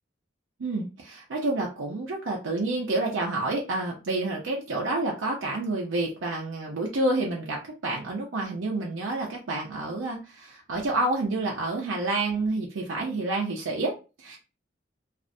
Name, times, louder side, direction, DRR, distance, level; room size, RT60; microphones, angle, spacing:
voice 1, 0.6-14.4, right 2 dB, 85° right, -1 dB, 0.6 m, -29 dB
2.4 x 2.1 x 2.5 m, 0.31 s
head